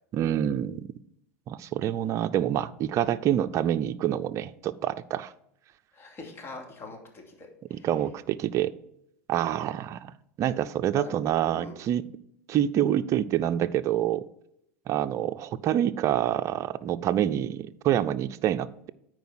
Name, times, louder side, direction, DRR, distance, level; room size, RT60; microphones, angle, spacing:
voice 1, 0.1-0.9 1.5-5.3 7.7-8.7 9.3-10.1 10.4-12.0 12.5-14.2 14.9-18.9, right 11 dB, 45° right, 12 dB, 0.5 m, -27 dB
voice 2, 5.9-7.9 11.0-11.1 11.5-11.7, left 3 dB, 35° left, 2 dB, 2.6 m, -43 dB
9.3 x 4.7 x 6.1 m, 0.76 s
hypercardioid pair, 90°, 7 cm